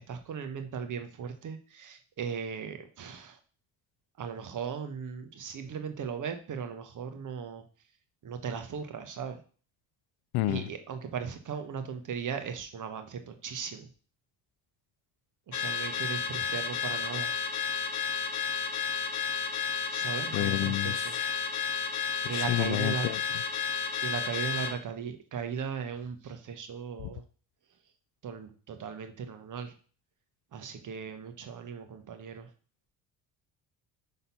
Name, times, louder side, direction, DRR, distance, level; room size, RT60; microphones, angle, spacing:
voice 1, 0.0-3.3 4.2-7.6 8.2-9.4 10.5-13.9 15.5-17.3 19.9-21.0 22.2-23.1 24.0-27.2 28.2-29.7 30.5-32.5, right 6 dB, 50° right, 1.3 m, -37 dB
voice 2, 10.3-10.7 20.3-21.4 22.2-23.4 27.0-27.1, left 17 dB, 70° left, 0.6 m, -31 dB
Car / Alarm, 15.5-24.8, left 6 dB, 45° left, 1.1 m, -32 dB
5.8 x 4.0 x 5.5 m
supercardioid pair, 75°, 40 cm